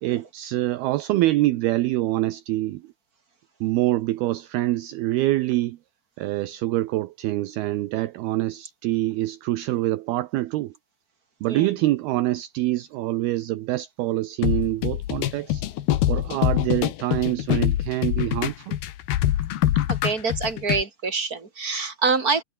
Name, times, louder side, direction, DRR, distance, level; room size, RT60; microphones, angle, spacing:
voice 1, 0.0-2.9 3.6-5.8 6.2-10.7 11.4-15.6 16.1-18.8, right 17 dB, 75° right, 2.7 m, -25 dB
sound 1, 14.4-20.8, left 13 dB, 70° left, 3.2 m, -24 dB
voice 2, 19.9-22.4, right 4 dB, 20° right, 4.3 m, -25 dB
omnidirectional pair, 4.8 m